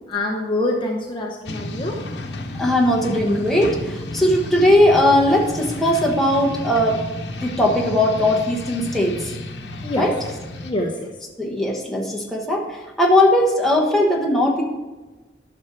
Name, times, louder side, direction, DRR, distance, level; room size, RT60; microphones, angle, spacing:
voice 1, 0.1-1.9 9.8-10.1 10.6-11.1, left 1 dB, 25° left, 0 dB, 0.8 m, -25 dB
sound 1, 1.5-10.7, left 1 dB, 70° left, 1.0 m, -32 dB
voice 2, 2.6-7.0 7.4-9.4 10.0-10.1 11.4-14.6, left 1 dB, ahead, -2 dB, 1.2 m, -19 dB
11.0 x 6.0 x 4.6 m, 1.2 s
head